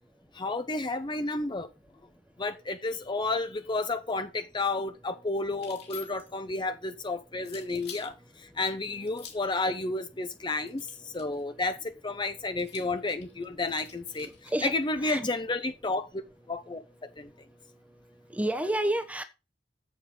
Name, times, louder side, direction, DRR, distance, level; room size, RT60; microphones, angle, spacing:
voice 1, 0.3-1.7 2.4-16.2 16.5-16.8 17.2-17.3, left 2 dB, 25° left, 0.7 m, -31 dB
sound 1, 5.5-6.4 7.4-8.1 9.1-9.6 10.6-11.4 12.6-14.4, left 7 dB, 60° left, 2.8 m, -48 dB
voice 2, 14.2-14.7 15.0-15.3 18.3-19.2, right 1 dB, 10° right, 1.0 m, -29 dB
7.5 x 7.2 x 4.9 m
head